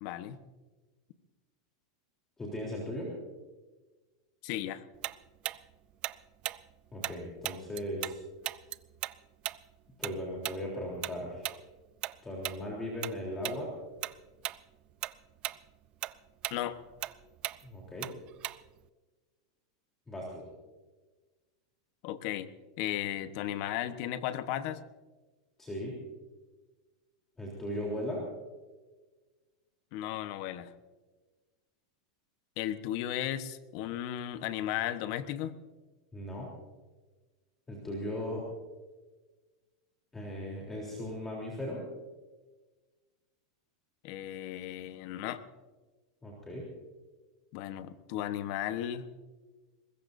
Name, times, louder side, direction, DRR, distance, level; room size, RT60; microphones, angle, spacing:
voice 1, 0.0-0.4 4.4-4.8 16.5-16.8 22.0-22.5 22.8-24.8 29.9-30.7 32.6-35.5 44.0-45.4 47.5-49.1, left 12 dB, 50° left, 12 dB, 1.1 m, -35 dB
voice 2, 2.4-3.1 6.9-8.1 10.0-11.6 12.2-13.7 17.6-18.1 20.1-20.5 25.6-26.0 27.4-28.2 36.1-36.5 37.7-38.4 40.1-41.8 46.2-46.7, left 1 dB, 10° left, -3 dB, 3.5 m, -37 dB
Tick-tock, 5.0-8.2 8.4-13.2 13.4-13.6 14.0-14.6 14.9-18.9, right 14 dB, 35° right, 0.5 m, -38 dB
23.0 x 20.5 x 2.7 m, 1.3 s
supercardioid pair, 145°, 3 cm